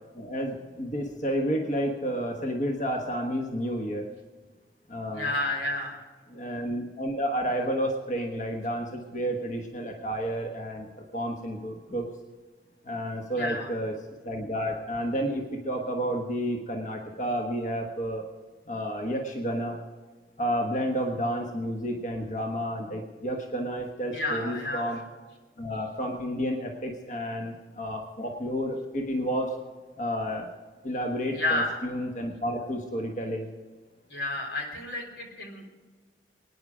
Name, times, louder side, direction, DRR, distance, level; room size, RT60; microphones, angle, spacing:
voice 1, 0.1-4.1 4.9-5.3 6.3-10.9 11.1-12.1 12.8-13.9 14.2-18.2 18.7-19.8 20.4-25.0 25.6-29.5 30.0-30.5 30.8-33.5, equal, 45° left, 2 dB, 1.3 m, -31 dB
voice 2, 5.1-6.0 13.3-13.7 24.1-25.0 31.3-31.8 34.1-35.7, left 1 dB, 90° left, 2 dB, 3.5 m, -30 dB
24.0 x 9.8 x 5.0 m, 1.4 s
head